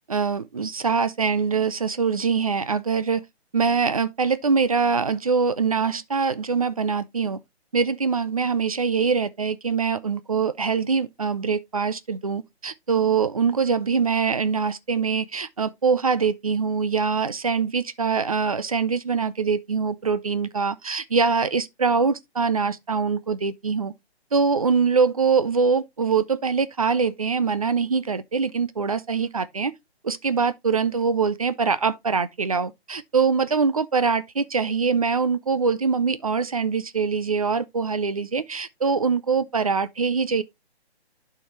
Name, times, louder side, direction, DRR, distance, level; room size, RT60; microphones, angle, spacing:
voice 1, 0.1-3.2 3.5-7.4 7.7-23.9 24.3-29.7 30.0-40.4, right 5 dB, 35° right, 0.4 m, -23 dB
11.5 x 4.5 x 3.0 m
hypercardioid pair, 160°, 33 cm